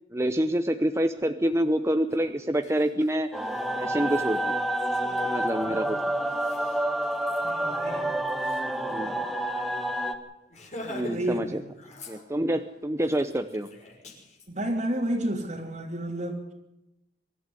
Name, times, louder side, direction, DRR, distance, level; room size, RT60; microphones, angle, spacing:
voice 1, 0.1-3.3 3.8-4.5 5.2-6.0 8.7-9.3 10.9-11.6 12.1-13.7, right 1 dB, 15° right, 8 dB, 0.8 m, -27 dB
Laughter, 2.1-2.2 2.5-9.2 9.5-9.6 9.9-10.1 10.5-11.5 11.7-12.6 13.0-14.5, left 1 dB, 40° left, 5.9 m, -45 dB
sound 1, 3.3-10.1, right 1 dB, ahead, 1.9 m, -28 dB
voice 2, 5.7-6.0 7.4-8.2 11.0-11.7 14.5-16.4, right 1 dB, 45° right, -4 dB, 3.1 m, -31 dB
24.5 x 13.5 x 9.8 m, 0.88 s
head